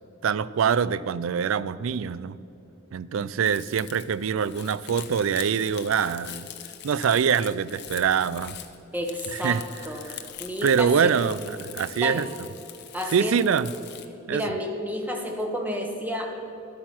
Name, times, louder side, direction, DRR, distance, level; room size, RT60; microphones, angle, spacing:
voice 1, 0.2-2.4 2.9-6.5 6.8-8.6 9.4-9.6 10.6-12.3 13.1-13.7 14.3-14.4, right 7 dB, 75° right, 18 dB, 0.4 m, -24 dB
Crumpling crinkling, 3.4-14.0, left 11 dB, 55° left, 0.8 m, -43 dB
voice 2, 8.9-9.6 9.8-10.0 10.4-11.1 12.0-12.2 12.9-13.3 14.3-16.3, equal, 10° right, 2 dB, 1.1 m, -30 dB
12.0 x 8.6 x 6.0 m, 2.8 s
head